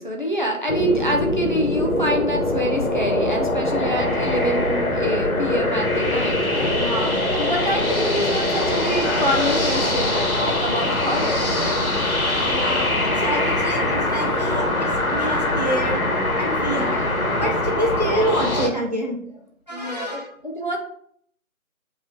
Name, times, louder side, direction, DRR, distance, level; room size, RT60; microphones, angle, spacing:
voice 1, 0.0-7.1 7.4-11.9 16.7-17.1 19.7-20.8, equal, 35° left, 0 dB, 0.8 m, -26 dB
sound 1, 0.7-18.7, left 1 dB, 75° left, 1.6 m, -22 dB
voice 2, 6.7-7.2 12.4-16.0 16.4-17.0 17.3-19.4 19.7-20.3, right 1 dB, 30° right, -2 dB, 0.9 m, -27 dB
sound 2, 8.7-14.6, left 1 dB, 55° left, 2.3 m, -34 dB
7.4 x 3.1 x 4.0 m, 0.64 s
figure-of-eight pair, 175°, 42 cm